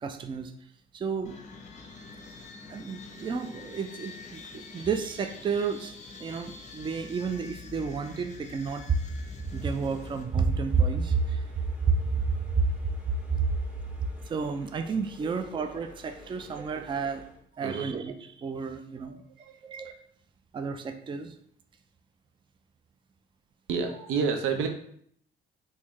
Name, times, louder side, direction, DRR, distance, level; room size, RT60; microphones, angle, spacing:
voice 1, 0.0-0.5 0.9-1.4 2.7-5.9 6.2-9.0 9.5-12.7 13.4-13.5 14.3-17.3 17.6-19.2 19.6-19.9 20.5-21.3, right 5 dB, 25° right, 7 dB, 0.3 m, -30 dB
sound 1, 1.2-10.2, left 4 dB, 35° left, 0.6 m, -45 dB
sound 2, 9.3-17.4, left 2 dB, 5° right, 0.7 m, -51 dB
voice 2, 17.6-17.9 19.0-19.6 23.7-24.7, right 5 dB, 85° right, 5 dB, 0.6 m, -30 dB
3.5 x 2.7 x 3.1 m, 0.64 s
cardioid pair, 90°, 20 cm